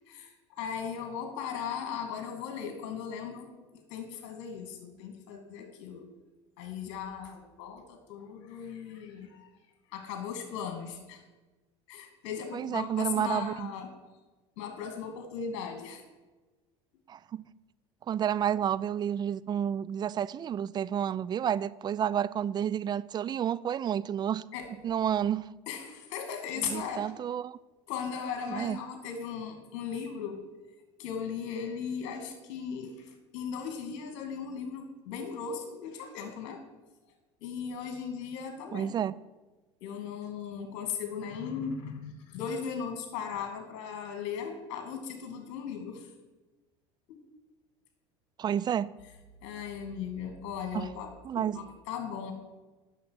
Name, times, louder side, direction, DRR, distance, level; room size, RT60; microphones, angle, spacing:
voice 1, 0.1-3.5 3.7-6.1 6.6-9.5 9.9-11.2 11.9-13.9 14.6-16.0 24.5-24.7 25.7-27.1 27.9-30.4 31.0-36.6 37.4-38.9 39.8-46.1 47.1-47.2 49.4-52.3, left 7 dB, 65° left, 2.2 m, -37 dB
voice 2, 12.5-13.7 17.1-17.4 18.1-24.4 24.8-25.5 26.6-27.6 28.5-28.8 38.7-39.1 48.4-48.9 50.7-50.9 51.3-51.6, right 9 dB, 30° right, 0.4 m, -30 dB
8.4 x 6.6 x 6.4 m
hypercardioid pair, 75°, 15 cm